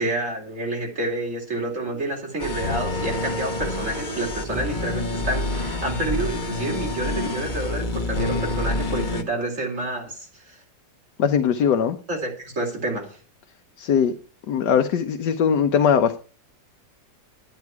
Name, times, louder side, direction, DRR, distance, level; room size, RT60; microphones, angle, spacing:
voice 1, 0.0-10.6 12.1-13.2, right 2 dB, 40° right, -1 dB, 4.1 m, -29 dB
sound 1, 2.4-9.2, left 2 dB, 30° left, 1.2 m, -27 dB
voice 2, 11.2-12.0 13.8-14.1 14.5-16.2, left 7 dB, 70° left, 7 dB, 1.4 m, -20 dB
12.0 x 10.0 x 4.7 m, 0.38 s
omnidirectional pair, 2.0 m